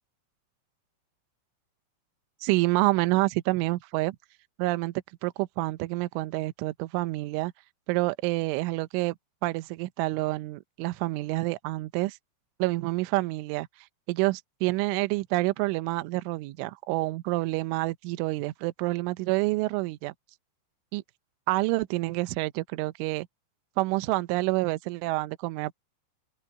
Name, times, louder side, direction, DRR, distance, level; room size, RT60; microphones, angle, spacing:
voice 1, 2.4-4.2 4.6-4.9 5.2-7.5 7.9-9.2 9.4-12.2 12.6-13.7 14.1-20.1 20.9-21.0 21.5-23.3 23.8-25.7, right 20 dB, 80° right, 3.0 m, -28 dB
open air
omnidirectional pair, 6.0 m